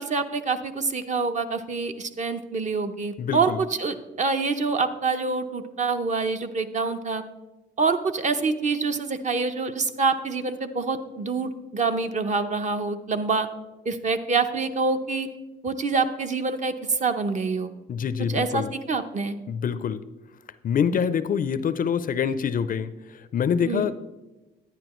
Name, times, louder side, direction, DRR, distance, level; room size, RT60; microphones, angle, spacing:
voice 1, 0.0-7.2 7.8-13.5 13.9-15.3 15.6-17.7 18.3-19.3 23.7-23.9, right 4 dB, 35° right, 8 dB, 0.7 m, -26 dB
voice 2, 3.2-3.6 17.9-18.7 19.5-20.0 20.6-24.0, left 7 dB, 45° left, 14 dB, 0.4 m, -26 dB
11.0 x 9.6 x 3.0 m, 1.1 s
cardioid pair, 90°, 20 cm